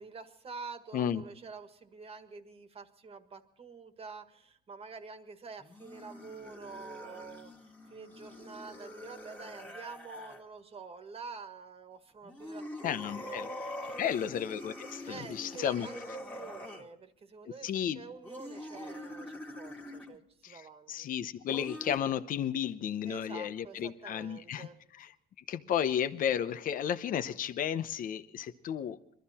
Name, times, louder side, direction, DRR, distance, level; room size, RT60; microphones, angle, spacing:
voice 1, 0.0-7.5 7.9-14.2 15.1-21.1 23.0-24.8, right 4 dB, 35° right, 8 dB, 1.6 m, -47 dB
sound 1, 5.6-10.4 12.2-16.9 18.2-20.2 21.5-22.0, left 1 dB, 10° left, 1.8 m, -44 dB
voice 2, 12.8-13.5 14.0-15.9 17.6-18.0 20.4-24.7 24.9-25.1 25.5-29.0, left 9 dB, 55° left, 11 dB, 0.8 m, -33 dB
22.5 x 13.5 x 4.3 m, 0.70 s
cardioid pair, 110°, 17 cm